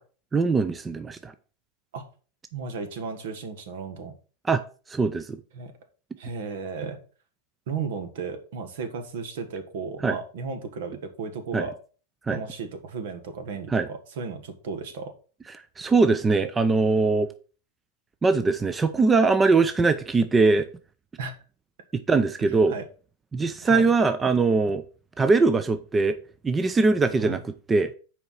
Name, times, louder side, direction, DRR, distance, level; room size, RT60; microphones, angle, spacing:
voice 1, 0.3-1.3 4.4-4.6 4.9-5.4 10.0-10.2 11.5-11.7 12.3-12.4 13.7-13.9 15.8-17.3 18.2-20.7 21.9-22.7 23.3-24.8 25.2-26.2 26.4-27.9, right 3 dB, 15° right, 0.5 m, -21 dB
voice 2, 2.5-4.1 5.5-5.7 6.2-7.0 7.7-11.7 12.3-15.1 21.2-21.3 22.7-22.8 23.6-23.9 27.2-27.4, right 5 dB, 75° right, 1.6 m, -34 dB
6.9 x 4.6 x 5.6 m
supercardioid pair, 135°, 0 cm